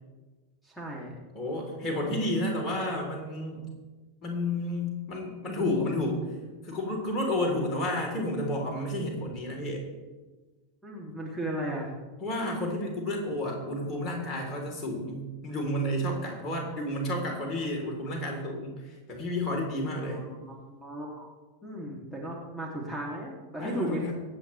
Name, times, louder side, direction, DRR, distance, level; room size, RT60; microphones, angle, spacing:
voice 1, 0.6-1.2 10.8-11.9 20.0-21.3 21.6-24.0, right 1 dB, ahead, -3 dB, 2.7 m, -36 dB
voice 2, 1.3-3.7 4.2-6.2 6.6-9.8 12.2-20.2 23.6-24.2, left 1 dB, 30° left, 1 dB, 3.6 m, -31 dB
25.0 x 8.9 x 3.3 m, 1.3 s
figure-of-eight pair, 90°, 0 cm